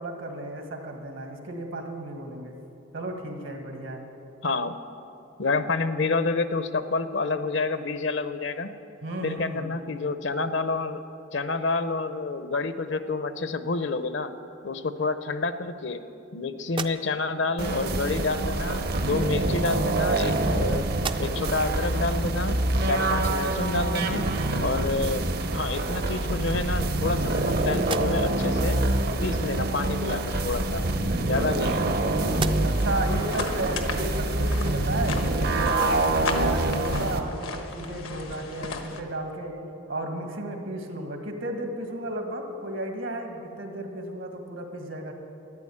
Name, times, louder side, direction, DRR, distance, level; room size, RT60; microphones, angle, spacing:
voice 1, 0.0-2.5 2.9-4.0 9.0-9.8 31.5-31.6 32.6-35.2 35.6-39.6 39.9-45.1, right 1 dB, 75° right, 3 dB, 1.8 m, -34 dB
voice 2, 4.4-4.7 5.4-8.7 9.2-11.0 11.3-14.3 14.6-16.0 16.3-20.9 21.2-22.6 22.8-24.3 24.6-28.8 29.2-30.8 31.2-31.9, left 3 dB, 60° left, 11 dB, 0.7 m, -28 dB
sound 1, 16.6-17.5 18.6-18.8 19.7-20.6 20.9-21.6 22.1-22.2 24.9-25.0 25.4-26.1 26.7-27.4 27.8-28.5 30.5-31.9 32.3-33.0, right 5 dB, 25° right, 0.4 m, -39 dB
sound 2, 17.6-37.2, right 2 dB, 50° right, 0.8 m, -26 dB
sound 3, 32.7-39.0, left 3 dB, 90° left, 1.3 m, -36 dB
13.0 x 11.0 x 8.6 m, 2.7 s
head